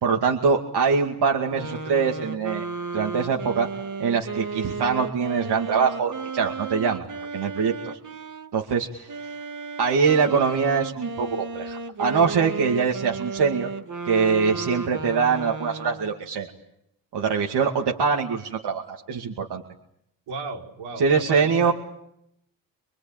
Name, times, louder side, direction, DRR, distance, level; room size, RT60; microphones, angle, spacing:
voice 1, 0.0-2.6 2.9-3.7 4.0-7.1 7.3-8.0 8.5-9.1 9.8-13.7 14.0-16.5 17.1-19.6 21.0-21.7, right 5 dB, 65° right, 1 dB, 2.5 m, -23 dB
sound 1, 1.5-8.5 9.1-16.2, right 4 dB, 45° right, 1.8 m, -34 dB
voice 2, 20.3-21.7, right 3 dB, 85° right, 1 dB, 5.2 m, -34 dB
25.5 x 23.0 x 8.9 m, 0.76 s
cardioid pair, 75°, 43 cm